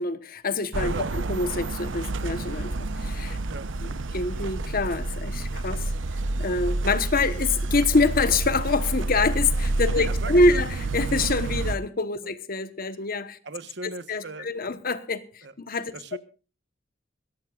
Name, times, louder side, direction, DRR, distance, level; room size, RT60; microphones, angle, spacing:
voice 1, 0.0-3.4 3.8-5.9 6.4-13.4 13.8-16.2, left 3 dB, 50° left, 1.2 m, -26 dB
sound 1, 0.7-11.8, right 2 dB, 80° right, 0.8 m, -29 dB
voice 2, 0.8-1.1 3.5-3.7 9.9-10.6 12.2-12.3 13.4-14.5 15.4-15.5 15.9-16.2, right 3 dB, 65° right, 1.2 m, -37 dB
21.5 x 17.0 x 2.5 m
head